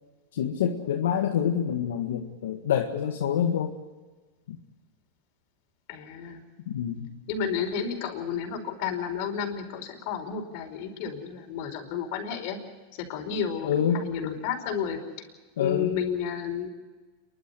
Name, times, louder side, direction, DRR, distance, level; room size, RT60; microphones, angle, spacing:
voice 1, 0.3-3.7 4.5-4.6 6.7-7.1 13.6-14.4 15.6-15.9, left 8 dB, 85° left, 1 dB, 1.8 m, -27 dB
voice 2, 5.9-6.4 7.3-12.6 13.0-13.7 13.9-15.0 15.6-16.7, left 7 dB, 60° left, 2 dB, 4.9 m, -31 dB
28.0 x 12.0 x 9.9 m, 1.3 s
supercardioid pair, 120°, 0 cm